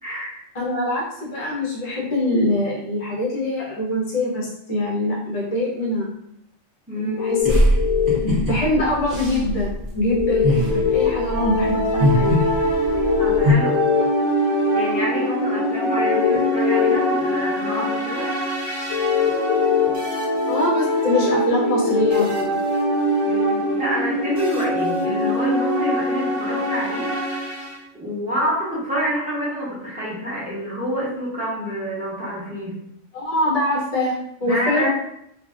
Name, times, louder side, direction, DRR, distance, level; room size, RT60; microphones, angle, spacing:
voice 1, 0.0-0.4 6.9-7.1 13.2-13.8 14.7-18.3 23.3-27.5 27.9-32.8 34.4-34.9, equal, 5° right, -8 dB, 0.9 m, -28 dB
voice 2, 0.5-6.1 6.9-7.5 8.5-12.5 20.5-22.6 33.1-34.9, left 1 dB, 35° left, -5 dB, 0.7 m, -24 dB
sound 1, 7.2-8.2 10.1-11.1 13.0-14.0 16.0-17.0 18.9-19.9 21.8-22.2, left 10 dB, 70° left, 0.9 m, -21 dB
sound 2, 7.4-13.5, equal, 45° right, 1.0 m, -22 dB
sound 3, 10.5-27.8, equal, 75° right, 1.2 m, -23 dB
3.2 x 2.3 x 2.5 m, 0.75 s
omnidirectional pair, 1.4 m